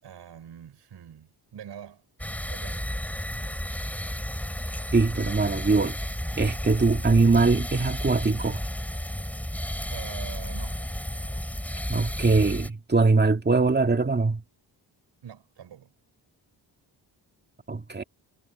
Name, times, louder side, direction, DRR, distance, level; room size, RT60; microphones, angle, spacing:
voice 1, 0.0-2.0 2.4-2.9 9.9-10.9 15.2-15.9, right 9 dB, 70° right, 5.3 m, -44 dB
sound 1, 2.2-12.7, equal, 5° left, 6.3 m, -32 dB
voice 2, 4.9-6.0 6.4-8.6 11.9-14.4 17.7-18.0, right 3 dB, 25° right, 2.1 m, -22 dB
cardioid pair, 110°, 43 cm